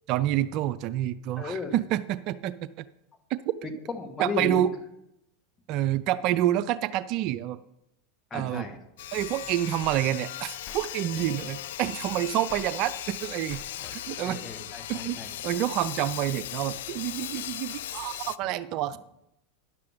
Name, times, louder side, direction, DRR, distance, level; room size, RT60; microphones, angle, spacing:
voice 1, 0.1-2.9 3.3-3.4 4.2-4.7 5.7-7.6 8.3-8.6 9.1-13.6 13.9-14.4 14.9-15.2 15.4-19.0, right 13 dB, 50° right, 14 dB, 0.4 m, -28 dB
voice 2, 1.4-1.7 3.6-4.8 8.3-8.8 13.8-13.9 14.2-15.3, left 4 dB, 20° left, 5 dB, 1.6 m, -34 dB
Sawing, 9.0-18.4, left 13 dB, 75° left, 0.3 m, -38 dB
sound 1, 9.2-10.0 10.7-10.9 11.2-12.7 13.5-14.3, left 4 dB, 35° left, 1.3 m, -48 dB
10.5 x 6.9 x 5.0 m, 0.82 s
hypercardioid pair, 110°, 0 cm